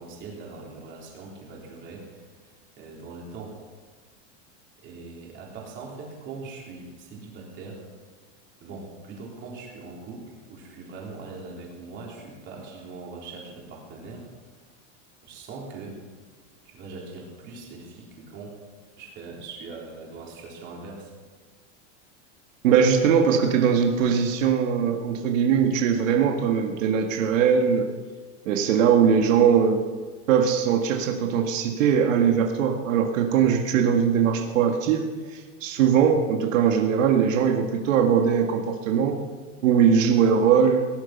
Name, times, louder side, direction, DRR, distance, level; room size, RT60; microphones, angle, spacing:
voice 1, 0.0-2.3 2.8-3.6 4.8-7.9 8.6-14.3 15.2-16.0 16.7-18.6 18.9-21.1, right 3 dB, 30° right, -2 dB, 3.7 m, -41 dB
voice 2, 22.6-27.9 28.5-29.8 30.3-39.2 39.6-40.9, right 7 dB, 85° right, 3 dB, 1.9 m, -21 dB
18.5 x 11.0 x 5.9 m, 1.4 s
supercardioid pair, 175°, 37 cm